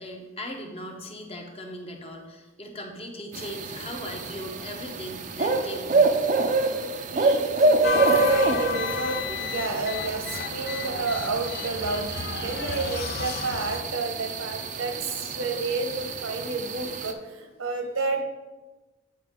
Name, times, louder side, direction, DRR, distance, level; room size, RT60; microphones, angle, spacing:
voice 1, 0.0-6.2, left 1 dB, 25° left, 2 dB, 0.8 m, -38 dB
sound 1, 3.3-17.1, right 3 dB, 35° right, 0.4 m, -27 dB
voice 2, 7.1-18.2, right 3 dB, 85° right, 4 dB, 1.1 m, -30 dB
sound 2, 7.8-13.8, left 4 dB, 50° left, 0.4 m, -32 dB
8.6 x 4.7 x 3.6 m, 1.2 s
head